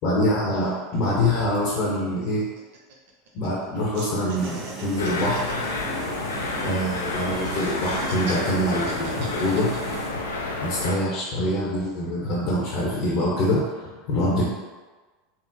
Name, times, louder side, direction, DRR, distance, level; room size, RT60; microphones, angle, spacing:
voice 1, 0.0-2.5 3.3-5.4 6.6-9.7 10.6-14.4, left 1 dB, 50° left, -5 dB, 0.7 m, -25 dB
sound 1, 2.0-3.7 3.9-7.0 7.4-10.5 11.0-11.5, right 3 dB, 65° right, 0.5 m, -41 dB
sound 2, 4.3-10.1, right 2 dB, 20° right, 0.8 m, -36 dB
sound 3, 5.0-11.0, left 2 dB, 85° left, 0.4 m, -30 dB
3.6 x 2.0 x 2.7 m, 1.3 s
hypercardioid pair, 90°, 0 cm